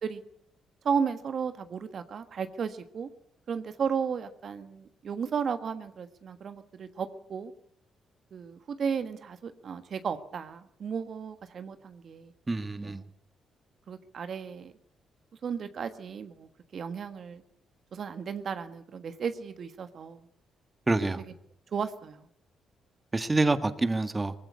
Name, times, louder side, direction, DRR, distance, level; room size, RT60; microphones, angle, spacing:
voice 1, 0.8-3.1 3.5-7.5 8.3-12.3 12.8-12.9 13.9-14.7 15.4-17.4 17.9-20.2 21.7-22.3, right 6 dB, 60° right, 1.4 m, -34 dB
voice 2, 12.5-13.0 20.9-21.2 23.1-24.3, right 2 dB, 20° right, 1.6 m, -27 dB
19.5 x 16.0 x 9.6 m
supercardioid pair, 70°, 0 cm